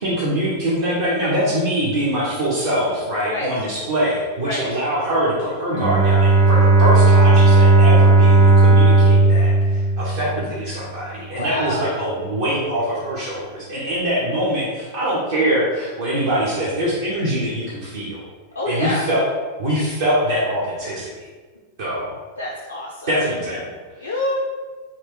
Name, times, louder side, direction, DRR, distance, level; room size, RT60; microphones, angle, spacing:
voice 1, 0.0-18.2 18.6-19.3 19.6-21.3 21.8-22.1 23.1-24.1, right 1 dB, 60° right, -7 dB, 1.0 m, -23 dB
Bowed string instrument, 5.7-10.6, right 3 dB, 85° right, 1.3 m, -14 dB
voice 2, 11.3-11.9 18.5-19.0 22.4-23.1 24.0-24.4, left 2 dB, 75° left, -3 dB, 0.5 m, -26 dB
4.3 x 2.5 x 3.9 m, 1.4 s
figure-of-eight pair, 90°, 0 cm